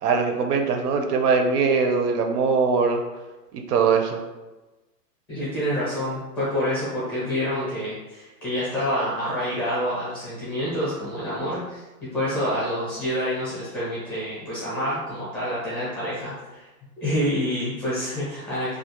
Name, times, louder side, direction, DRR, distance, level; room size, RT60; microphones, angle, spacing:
voice 1, 0.0-3.0 3.5-4.2, right 5 dB, 70° right, 5 dB, 0.5 m, -21 dB
voice 2, 5.3-11.8 12.1-16.6 17.0-18.8, equal, 15° left, -10 dB, 0.5 m, -27 dB
2.3 x 2.0 x 2.7 m, 1.1 s
hypercardioid pair, 160°, 48 cm